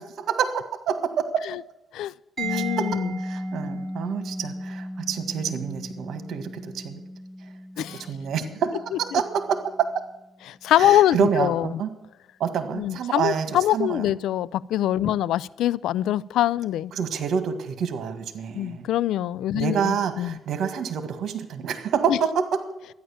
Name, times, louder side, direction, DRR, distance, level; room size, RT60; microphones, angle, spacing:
voice 1, 0.2-1.5 2.5-2.9 3.2-7.0 7.8-10.0 10.8-11.9 12.4-13.5 13.7-14.1 16.9-18.9 19.5-22.6, right 7 dB, 70° right, 10 dB, 1.7 m, -27 dB
voice 2, 1.9-3.1 7.8-8.0 9.1-9.2 10.5-11.7 12.7-16.9 18.6-20.4 22.1-22.2, left 13 dB, 85° left, 22 dB, 0.4 m, -24 dB
Mallet percussion, 2.4-9.9, right 1 dB, 35° right, 4.4 m, -35 dB
12.5 x 10.0 x 7.1 m, 0.92 s
cardioid pair, 90°, 0 cm